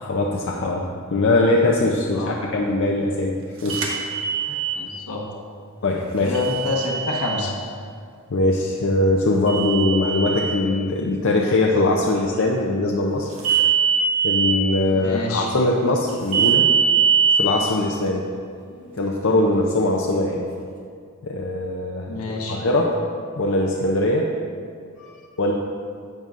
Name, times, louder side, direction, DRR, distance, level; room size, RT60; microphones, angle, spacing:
voice 1, 0.0-3.8 4.4-4.6 5.8-6.4 8.3-13.3 14.2-16.7 17.3-18.2 18.7-20.5 21.2-22.1 22.5-23.0 23.3-24.3 25.0-25.5, left 2 dB, 60° left, -1 dB, 0.6 m, -21 dB
sound 1, 3.7-4.8 6.3-7.4 9.5-10.5 13.4-14.5 16.3-17.4, right 7 dB, 65° right, 1.2 m, -21 dB
voice 2, 4.8-5.2 6.2-7.5 14.9-15.5 22.1-22.6, left 3 dB, 80° left, -1 dB, 1.3 m, -27 dB
10.5 x 7.5 x 2.5 m, 2.2 s
head